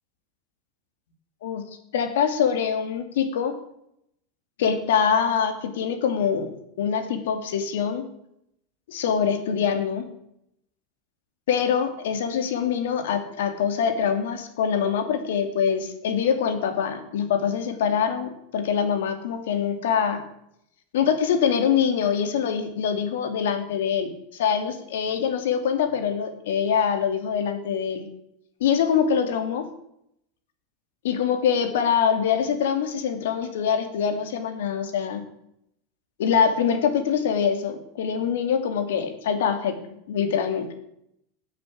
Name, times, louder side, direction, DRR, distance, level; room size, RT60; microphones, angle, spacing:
voice 1, 1.4-3.5 4.6-8.0 8.9-10.1 11.5-20.2 20.9-28.1 28.6-29.7 31.0-35.2 36.2-39.8 40.1-40.7, left 7 dB, 85° left, 8 dB, 2.5 m, -24 dB
14.5 x 7.6 x 8.5 m, 0.77 s
supercardioid pair, 130°, 0 cm